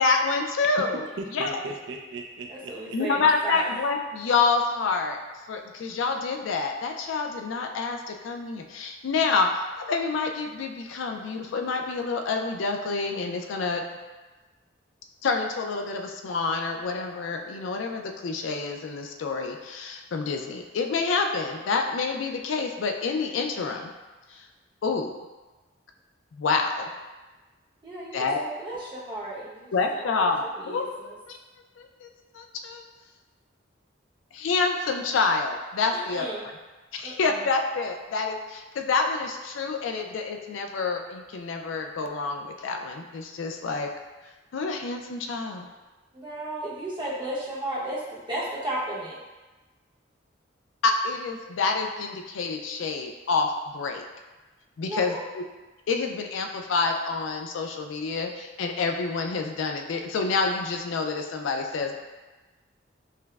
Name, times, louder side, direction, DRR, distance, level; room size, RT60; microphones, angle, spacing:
voice 1, 0.0-1.0 1.3-1.6 2.9-5.2 5.5-9.5 9.8-13.8 15.2-23.9 24.3-24.5 24.8-25.2 26.3-26.9 28.1-28.4 29.7-30.8 31.3-31.4 31.8-32.8 34.3-36.2 36.9-43.9 44.5-45.7 50.8-54.0 54.8-55.4 55.9-62.0, left 4 dB, 80° left, 4 dB, 0.4 m, -27 dB
voice 2, 0.9-3.4, right 2 dB, 65° right, 2 dB, 0.4 m, -38 dB
voice 3, 2.5-3.7 27.8-30.3 30.6-31.1 35.9-36.5 37.0-37.4 46.1-49.2 54.9-55.2, right 1 dB, 25° right, -7 dB, 0.8 m, -34 dB
5.6 x 2.0 x 2.3 m, 1.2 s
head